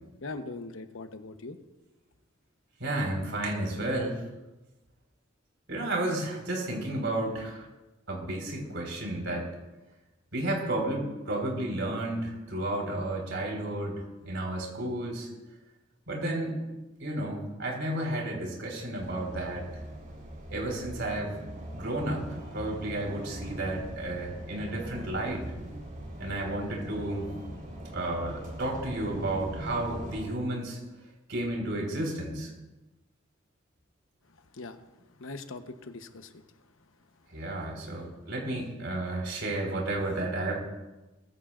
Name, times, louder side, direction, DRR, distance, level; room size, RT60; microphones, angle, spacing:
voice 1, 0.2-1.6 34.3-34.9 35.2-36.6, left 3 dB, 75° left, 8 dB, 1.0 m, -41 dB
voice 2, 2.8-4.2 5.7-7.6 8.1-9.5 10.3-15.3 16.1-16.6 17.0-19.7 20.5-21.4 21.7-22.3 22.5-25.4 26.2-27.3 27.9-30.8 31.3-32.5 37.3-40.6, right 1 dB, 65° right, 0 dB, 4.6 m, -32 dB
sound 1, 19.0-30.3, right 1 dB, 45° right, 4.2 m, -41 dB
20.0 x 15.0 x 2.5 m, 1.1 s
head